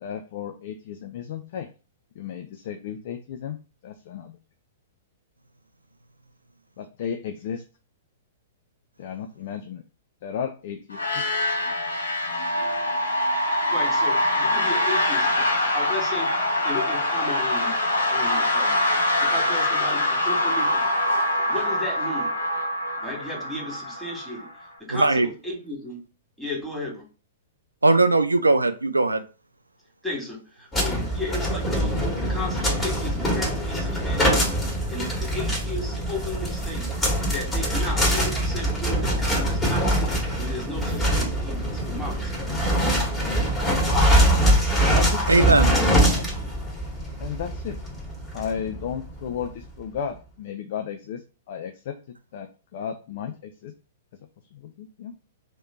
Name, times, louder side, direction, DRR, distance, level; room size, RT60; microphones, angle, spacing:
voice 1, 0.0-1.7 2.2-3.6 3.8-4.4 6.8-7.6 9.0-9.8 10.2-11.3 44.9-46.2 47.2-47.8 48.3-51.2 51.5-52.0 52.3-53.7 54.5-55.1, left 8 dB, 50° left, 6 dB, 0.4 m, -33 dB
sound 1, 10.9-24.6, left 1 dB, 75° left, 0.9 m, -24 dB
voice 2, 13.7-17.8 18.1-20.8 21.4-22.3 23.0-24.5 24.8-26.0 26.4-27.1 30.0-36.9 37.3-42.4, left 1 dB, ahead, -2 dB, 1.8 m, -35 dB
voice 3, 24.9-25.3 27.8-29.2 45.3-45.7, right 2 dB, 85° right, 9 dB, 0.4 m, -19 dB
sound 2, 30.7-49.5, equal, 15° left, 1.7 m, -23 dB
3.1 x 2.9 x 4.3 m, 0.35 s
figure-of-eight pair, 105°, 0 cm